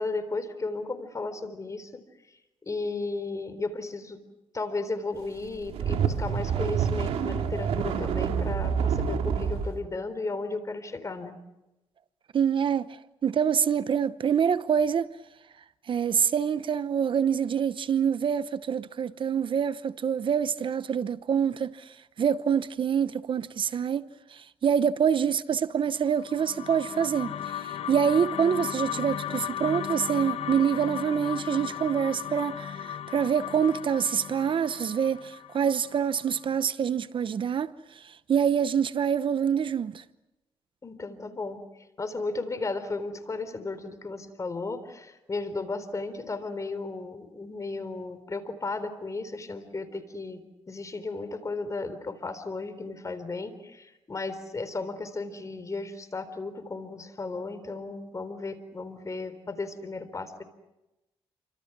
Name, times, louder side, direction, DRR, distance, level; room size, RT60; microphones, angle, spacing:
voice 1, 0.0-2.0 2.6-4.2 4.5-11.4 40.8-60.4, left 3 dB, 30° left, 4.0 m, -34 dB
sound 1, 5.5-9.7, right 7 dB, 80° right, 3.2 m, -27 dB
voice 2, 12.3-15.1 15.9-40.0, right 7 dB, 55° right, 0.9 m, -26 dB
sound 2, 26.1-36.4, left 10 dB, 70° left, 1.4 m, -36 dB
29.0 x 25.5 x 6.1 m
cardioid pair, 75°, 10 cm